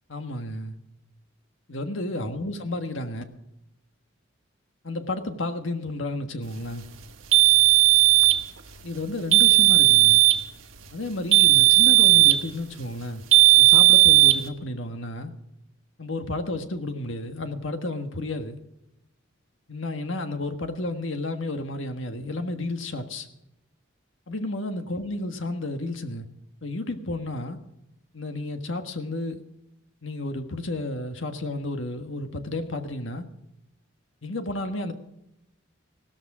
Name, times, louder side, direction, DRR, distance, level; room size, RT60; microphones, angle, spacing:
voice 1, 0.1-0.7 1.7-3.2 4.8-6.9 8.8-10.2 10.9-13.2 13.5-15.3 16.0-18.6 19.7-23.3 24.3-26.3 26.6-27.6 28.1-29.4 30.0-33.2 34.2-34.9, left 2 dB, 70° left, 7 dB, 1.5 m, -32 dB
sound 1, 7.3-8.4 9.3-10.4 11.3-12.5 13.3-14.4, right 18 dB, 85° right, 1.5 m, -16 dB
16.5 x 13.5 x 4.9 m, 0.88 s
head